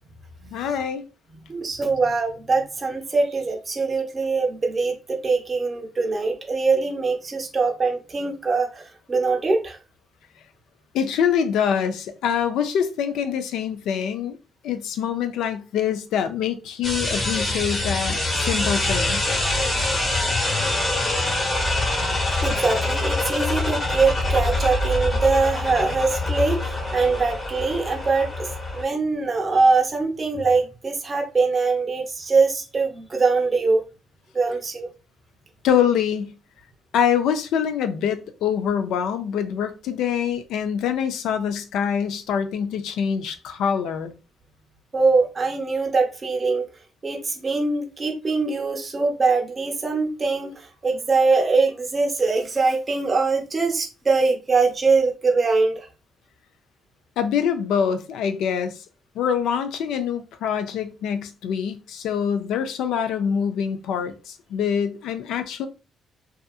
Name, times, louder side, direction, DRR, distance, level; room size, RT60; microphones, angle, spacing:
voice 1, 0.5-1.0 10.9-14.4 14.6-19.2 35.6-36.3 36.9-44.1 57.2-58.8 59.2-65.7, left 8 dB, 85° left, 0.4 m, -25 dB
voice 2, 1.5-9.8 22.4-28.5 28.7-33.8 34.3-34.9 44.9-46.6 47.0-55.9, right 4 dB, 30° right, 0.5 m, -22 dB
sound 1, 16.8-28.8, left 2 dB, 30° left, 1.1 m, -24 dB
2.7 x 2.4 x 2.3 m
cardioid pair, 90°, 0 cm